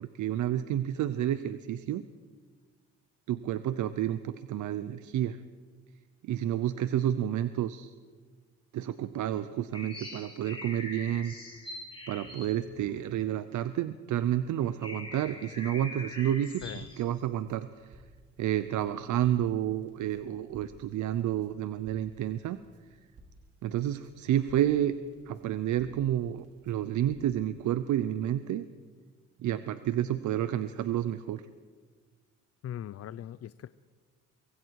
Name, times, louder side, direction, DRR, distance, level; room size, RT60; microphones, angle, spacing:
voice 1, 0.0-2.0 3.3-5.4 6.2-7.9 8.7-11.3 12.1-18.0 18.4-22.6 23.6-24.9 25.3-28.6 29.4-31.4, right 11 dB, 75° right, 13 dB, 0.8 m, -30 dB
sound 1, 9.7-13.6 14.2-14.3 14.6-17.1, left 2 dB, 15° left, 5.9 m, -44 dB
Crackle, 16.5-27.4, right 1 dB, 50° right, 4.9 m, -59 dB
voice 2, 32.6-33.7, left 11 dB, 55° left, 15 dB, 0.6 m, -40 dB
24.0 x 23.5 x 4.8 m, 1.5 s
cardioid pair, 90°, 30 cm